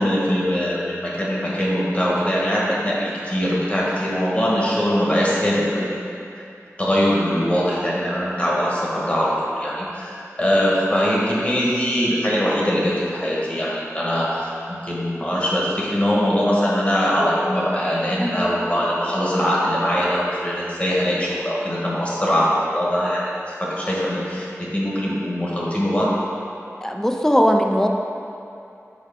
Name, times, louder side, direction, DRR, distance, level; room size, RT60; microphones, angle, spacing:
voice 1, 0.0-5.9 6.8-23.2 23.6-26.2, equal, 25° left, -6 dB, 1.3 m, -22 dB
voice 2, 18.2-18.5 26.8-27.9, equal, 10° left, 2 dB, 0.5 m, -19 dB
6.5 x 4.4 x 3.6 m, 2.7 s
wide cardioid pair, 55°, 5 cm